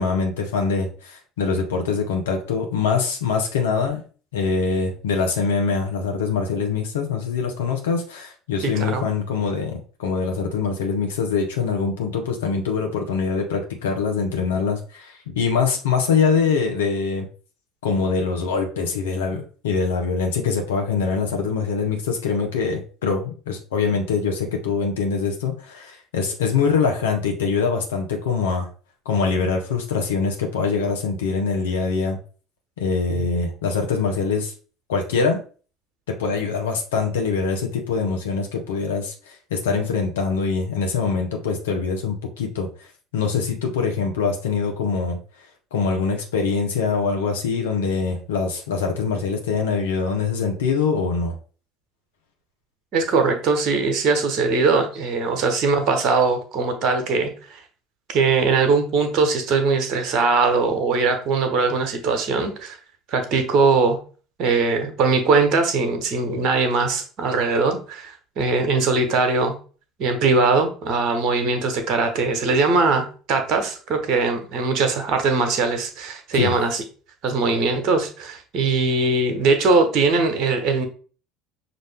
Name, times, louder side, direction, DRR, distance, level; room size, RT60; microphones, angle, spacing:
voice 1, 0.0-4.0 4.3-17.3 17.8-28.7 29.0-32.2 32.8-34.5 34.9-35.4 36.1-42.9 43.1-45.2 45.7-51.4 76.3-76.5, left 5 dB, 75° left, 2 dB, 0.8 m, -23 dB
voice 2, 8.6-9.1 33.1-33.2 52.9-57.6 58.1-62.8 63.1-64.0 64.4-69.6 70.0-76.8 77.2-80.9, right 4 dB, 55° right, 6 dB, 1.1 m, -21 dB
5.9 x 2.6 x 3.4 m, 0.38 s
figure-of-eight pair, 60°, 0 cm